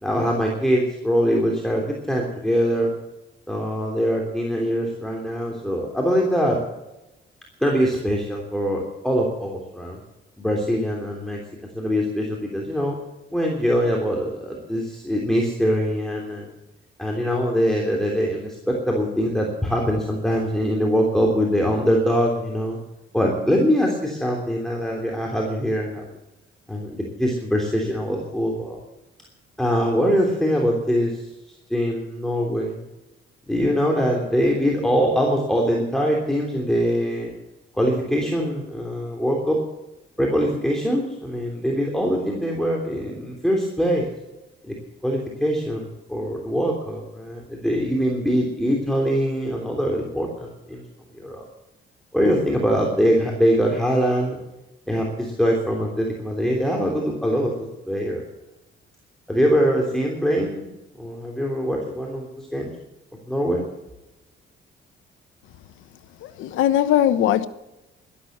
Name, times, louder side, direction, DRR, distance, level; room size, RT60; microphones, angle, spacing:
voice 1, 0.0-2.9 3.5-6.6 7.6-10.0 10.4-11.4 11.7-13.0 13.3-16.5 17.0-22.8 23.1-26.1 26.7-28.8 29.6-31.3 31.7-32.8 33.5-37.3 37.7-39.6 40.2-44.1 44.6-44.7 45.0-50.8 51.1-51.4 52.1-54.4 54.9-57.5 57.8-58.2 59.3-60.7 61.0-62.7 63.3-63.6, equal, ahead, 3.3 m, -23 dB
voice 2, 66.2-67.5, left 11 dB, 90° left, 1.0 m, -20 dB
12.5 x 12.5 x 7.5 m
cardioid pair, 90°, 20 cm